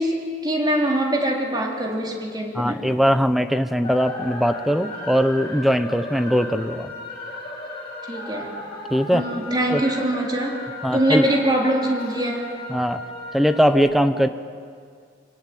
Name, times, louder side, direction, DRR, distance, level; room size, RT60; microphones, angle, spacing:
voice 1, 0.0-2.8 8.1-8.5 9.1-10.6 10.9-12.5, right 1 dB, 25° right, 0 dB, 3.4 m, -23 dB
voice 2, 2.5-6.9 8.9-9.3 9.7-9.8 10.8-11.3 12.7-13.0 13.3-14.3, equal, ahead, 10 dB, 0.9 m, -20 dB
sound 1, 3.8-13.8, left 2 dB, 30° left, 5.2 m, -36 dB
25.5 x 16.5 x 9.4 m, 2.1 s
head